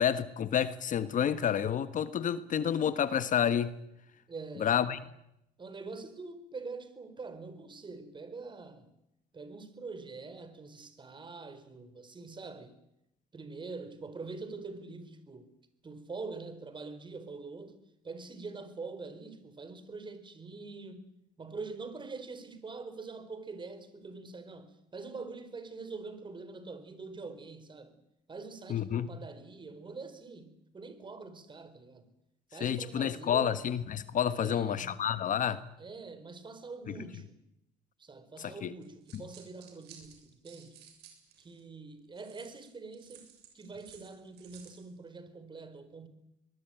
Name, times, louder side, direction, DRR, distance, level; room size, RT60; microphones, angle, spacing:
voice 1, 0.0-3.7 4.6-5.0 28.7-29.1 32.6-35.6 38.4-38.7, left 9 dB, 50° left, 1.4 m, -29 dB
voice 2, 4.3-4.9 5.6-8.9 9.3-12.8 13.3-15.5 15.8-21.1 21.4-27.9 28.3-32.1 32.5-33.6 34.4-34.9 35.8-37.4 38.0-40.9 41.4-43.3 43.5-46.1, right 4 dB, 30° right, 4.2 m, -44 dB
sound 1, 38.8-41.6 42.2-44.9, right 9 dB, 80° right, 7.2 m, -56 dB
23.0 x 20.5 x 9.2 m
cardioid pair, 110°, 17 cm